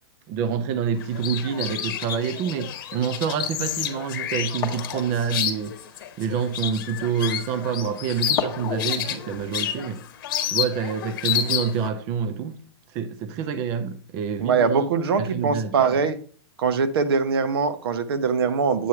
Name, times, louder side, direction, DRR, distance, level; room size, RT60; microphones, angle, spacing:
voice 1, 0.3-5.8 6.2-10.0 10.5-12.6 12.9-14.9 15.2-15.7, right 7 dB, 20° right, 0.3 m, -27 dB
sound 1, 1.0-11.9, left 10 dB, 50° left, 1.0 m, -30 dB
sound 2, 4.6-6.3 8.3-10.9 11.2-11.3, left 8 dB, 20° left, 0.9 m, -35 dB
voice 2, 14.4-16.2 16.6-18.9, right 5 dB, 65° right, 1.0 m, -22 dB
8.2 x 3.1 x 5.9 m
hypercardioid pair, 165°, 14 cm